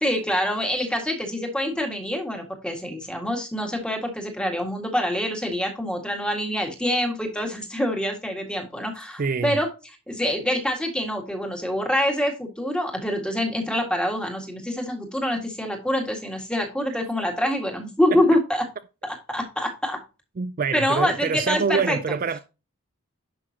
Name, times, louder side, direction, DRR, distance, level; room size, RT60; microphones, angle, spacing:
voice 1, 0.0-9.7 10.1-18.7 19.0-20.0 20.7-22.0, left 1 dB, 5° left, 1.8 m, -25 dB
voice 2, 9.2-9.6 18.1-18.2 20.4-22.4, right 5 dB, 40° right, 0.4 m, -25 dB
11.0 x 5.9 x 2.8 m
head